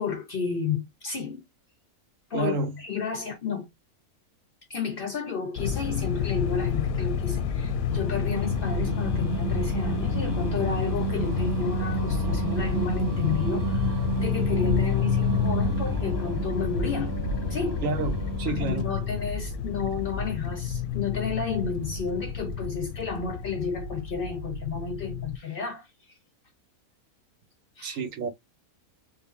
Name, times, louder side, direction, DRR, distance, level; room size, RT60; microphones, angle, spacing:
voice 1, 0.0-1.4 2.3-3.7 4.7-17.2 17.5-17.9 18.4-25.9 27.8-28.0, left 5 dB, 60° left, 0.6 m, -32 dB
voice 2, 2.3-2.8 17.8-18.9 27.8-28.3, right 3 dB, 65° right, 1.2 m, -29 dB
sound 1, 5.6-25.4, left 7 dB, 85° left, 1.1 m, -29 dB
Singing, 7.9-19.1, right 7 dB, 30° right, 0.3 m, -32 dB
3.7 x 2.1 x 3.5 m
omnidirectional pair, 1.5 m